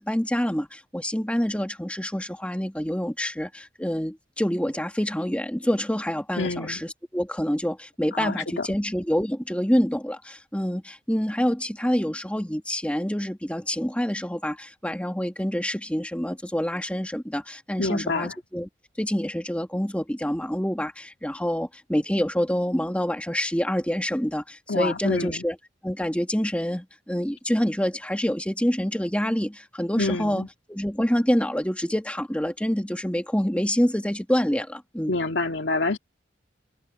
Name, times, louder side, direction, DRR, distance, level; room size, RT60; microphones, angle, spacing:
voice 1, 0.0-18.7 19.0-25.6 25.8-30.4 30.7-35.1, equal, 5° left, 2.5 m, -27 dB
voice 2, 6.4-6.8 8.1-8.7 17.8-18.3 24.7-25.4 30.0-30.5 35.1-36.0, left 3 dB, 70° left, 2.1 m, -27 dB
head